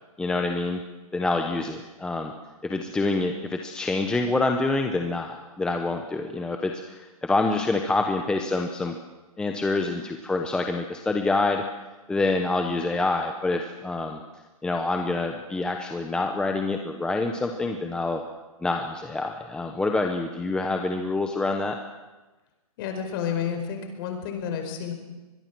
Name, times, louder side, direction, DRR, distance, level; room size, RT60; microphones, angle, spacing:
voice 1, 0.2-0.8 1.1-2.3 2.6-9.0 9.4-11.6 12.1-14.2 14.6-18.2 18.6-21.8, left 3 dB, 5° left, 4 dB, 0.9 m, -26 dB
voice 2, 22.8-24.9, left 7 dB, 35° left, 5 dB, 4.9 m, -30 dB
24.0 x 22.0 x 6.1 m, 1.1 s
hypercardioid pair, 155°, 19 cm